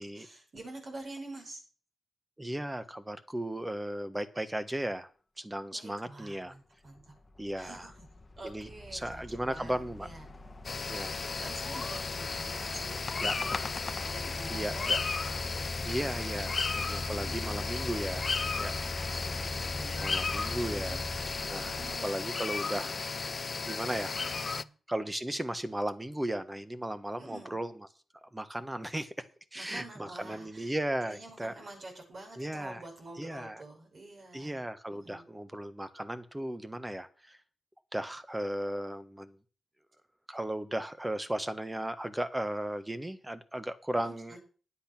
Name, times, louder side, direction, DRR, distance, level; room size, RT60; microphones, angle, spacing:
voice 1, 0.0-1.6 5.7-7.2 7.6-8.1 8.4-10.3 11.1-16.0 16.3-17.9 19.1-21.0 21.6-23.1 24.5-24.7 27.2-27.6 29.5-30.7 31.0-34.6 34.9-35.3 43.9-44.4, right 2 dB, 55° right, 1 dB, 5.4 m, -48 dB
voice 2, 2.4-5.1 5.4-6.6 7.4-7.9 8.4-10.1 10.9-11.2 13.2-13.3 14.5-15.0 15.8-18.8 20.0-21.1 21.5-21.7 22.0-22.9 23.6-24.4 24.9-27.9 28.3-29.3 29.5-31.5 32.4-32.8 33.2-33.6 34.3-37.4 37.9-39.4 40.3-44.4, right 1 dB, 15° right, 11 dB, 1.3 m, -36 dB
sound 1, 6.2-6.3 6.9-22.0, left 1 dB, 30° left, 1.3 m, -41 dB
sound 2, 10.6-24.6, left 4 dB, 45° left, 0.4 m, -34 dB
10.5 x 8.2 x 6.0 m, 0.39 s
cardioid pair, 60°, 0 cm